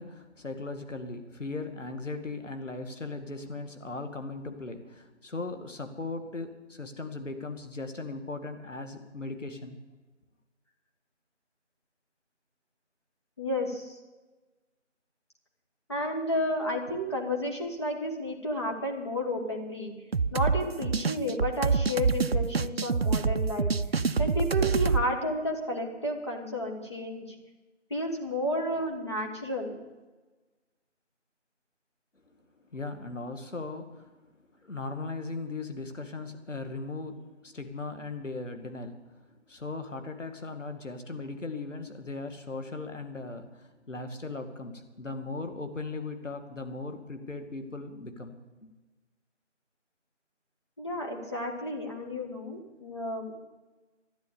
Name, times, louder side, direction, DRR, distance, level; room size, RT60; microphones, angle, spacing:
voice 1, 0.0-9.8 32.7-34.1 34.6-39.2 39.5-48.7, left 3 dB, 85° left, 7 dB, 2.3 m, -38 dB
voice 2, 13.4-14.0 15.9-19.9 20.3-23.7 24.2-27.3 27.9-29.7 50.8-53.3, left 1 dB, 25° left, -1 dB, 1.4 m, -31 dB
sound 1, 20.1-25.0, right 5 dB, 55° right, 0.5 m, -26 dB
12.5 x 10.0 x 8.6 m, 1.2 s
figure-of-eight pair, 175°, 36 cm